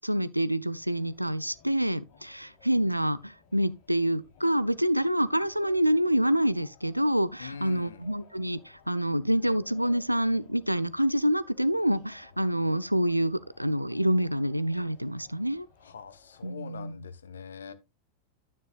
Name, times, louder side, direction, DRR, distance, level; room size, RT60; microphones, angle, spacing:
voice 1, 0.0-15.7 16.4-16.9, equal, 90° right, 0.4 m, -27 dB
sound 1, 0.7-16.5, left 5 dB, 45° left, 3.5 m, -58 dB
voice 2, 7.4-8.1 15.8-17.7, left 6 dB, 70° left, 0.9 m, -43 dB
9.8 x 9.3 x 2.4 m
figure-of-eight pair, 90°, 0 cm